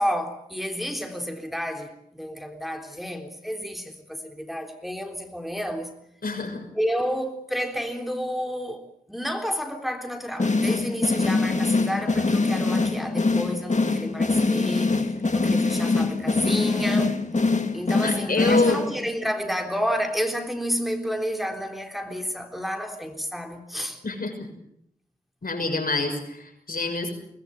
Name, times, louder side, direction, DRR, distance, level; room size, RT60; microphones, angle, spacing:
voice 1, 0.0-5.9 6.7-8.8 9.1-17.2 17.7-24.0, equal, ahead, 3.6 m, -30 dB
voice 2, 6.2-6.7 18.0-18.8 24.0-24.3 25.4-27.1, left 3 dB, 75° left, 6.3 m, -26 dB
sound 1, 10.4-19.2, left 3 dB, 50° left, 2.1 m, -23 dB
23.5 x 19.5 x 8.6 m
wide cardioid pair, 55°, 15 cm